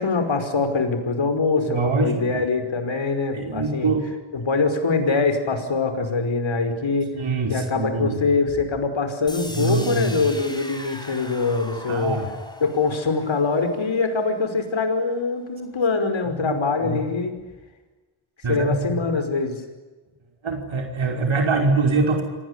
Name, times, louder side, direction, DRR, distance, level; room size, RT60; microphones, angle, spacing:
voice 1, 0.0-3.9 4.3-7.1 7.5-12.2 12.6-17.4 18.5-19.6, left 4 dB, 70° left, 8 dB, 5.4 m, -23 dB
voice 2, 1.7-2.4 3.3-4.1 7.1-8.2 9.5-10.2 11.9-12.3 16.4-16.6 16.8-17.0 18.4-19.0 20.4-22.2, right 3 dB, 75° right, 3 dB, 5.4 m, -24 dB
sound 1, 9.3-15.2, left 1 dB, 10° left, 5.6 m, -40 dB
27.5 x 20.0 x 9.8 m, 1.2 s
wide cardioid pair, 95°, 48 cm